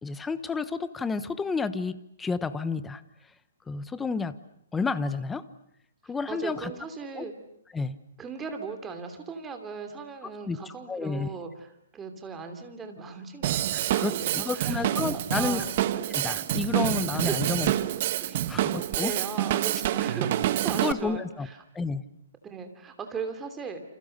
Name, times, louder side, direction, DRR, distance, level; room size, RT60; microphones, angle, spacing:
voice 1, 0.0-3.0 3.7-4.3 4.7-5.4 6.1-6.7 7.2-7.3 7.7-8.0 10.4-10.6 10.9-11.3 13.9-15.6 16.1-17.7 18.5-19.1 20.8-21.5 21.7-22.0, left 4 dB, 5° left, 14 dB, 1.0 m, -30 dB
voice 2, 6.0-7.3 8.2-15.8 17.1-17.8 18.2-21.6 22.4-23.8, right 5 dB, 10° right, 6 dB, 3.1 m, -38 dB
Drum kit / Drum, 13.4-20.9, right 13 dB, 40° right, 1.3 m, -27 dB
29.0 x 29.0 x 6.7 m, 0.73 s
hypercardioid pair, 165°, 0 cm